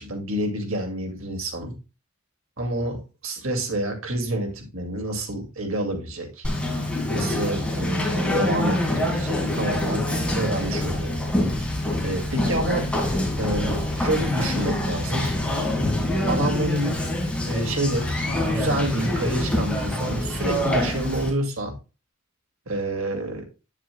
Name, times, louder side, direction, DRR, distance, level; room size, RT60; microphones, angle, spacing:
voice 1, 0.0-1.8 2.6-6.5 7.1-10.1 10.3-11.2 12.0-12.9 13.4-15.3 16.3-17.0 17.5-21.8 22.7-23.4, right 1 dB, 70° right, 2.3 m, -28 dB
Conversation, 6.4-21.3, left 1 dB, 5° left, 2.2 m, -25 dB
9.1 x 7.3 x 2.3 m
head